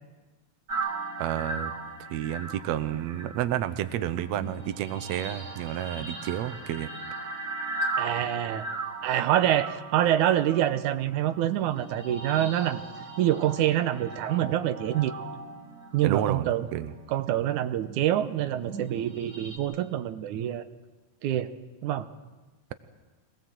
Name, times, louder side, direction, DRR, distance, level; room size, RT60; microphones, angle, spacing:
sound 1, 0.7-17.2 17.8-19.6, right 3 dB, 35° right, 2.5 m, -38 dB
voice 1, 1.2-1.7 2.1-6.9 16.0-16.9, right 11 dB, 70° right, 11 dB, 2.1 m, -30 dB
voice 2, 8.0-8.7 9.0-12.8 13.2-15.1 15.9-16.7 17.1-20.7 21.2-21.5 21.8-22.1, right 12 dB, 85° right, 10 dB, 2.4 m, -26 dB
25.0 x 19.0 x 7.7 m, 1.2 s
omnidirectional pair, 3.4 m